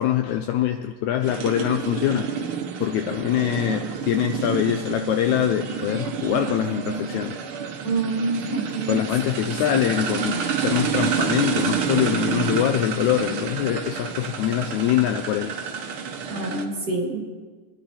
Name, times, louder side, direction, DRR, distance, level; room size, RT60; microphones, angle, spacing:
voice 1, 0.0-7.4 8.9-15.6, left 11 dB, 90° left, 7 dB, 1.7 m, -24 dB
sound 1, 1.2-16.6, right 6 dB, 70° right, 1.3 m, -29 dB
voice 2, 7.8-9.0 16.3-17.2, right 3 dB, 30° right, -1 dB, 2.5 m, -26 dB
23.0 x 11.5 x 4.3 m, 1.5 s
omnidirectional pair, 3.9 m